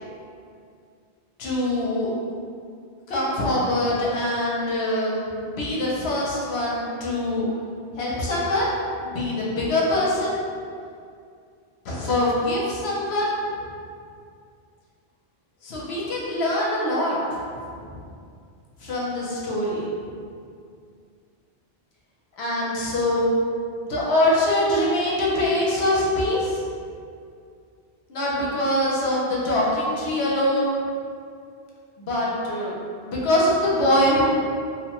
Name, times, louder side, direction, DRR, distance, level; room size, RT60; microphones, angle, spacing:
voice 1, 1.4-2.1 3.1-7.5 8.0-8.7 9.0-10.4 11.8-13.3 15.6-17.2 18.8-19.9 22.4-23.2 23.9-26.6 28.1-30.7 32.0-32.7 33.0-34.2, left 1 dB, 75° left, -5 dB, 0.9 m, -23 dB
2.6 x 2.1 x 2.9 m, 2.3 s
omnidirectional pair, 1.1 m